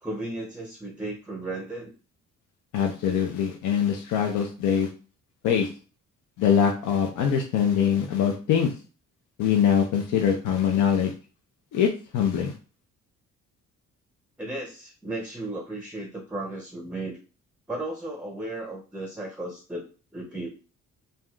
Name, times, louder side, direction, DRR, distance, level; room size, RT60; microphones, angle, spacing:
voice 1, 0.0-1.9 14.4-17.2 17.7-19.8 20.1-20.6, right 2 dB, 5° right, 2 dB, 0.5 m, -35 dB
voice 2, 2.7-4.9 5.4-5.7 6.4-8.7 9.4-11.1 11.7-12.5, left 8 dB, 80° left, 3 dB, 0.6 m, -23 dB
3.4 x 2.6 x 2.3 m, 0.36 s
cardioid pair, 90°, 30 cm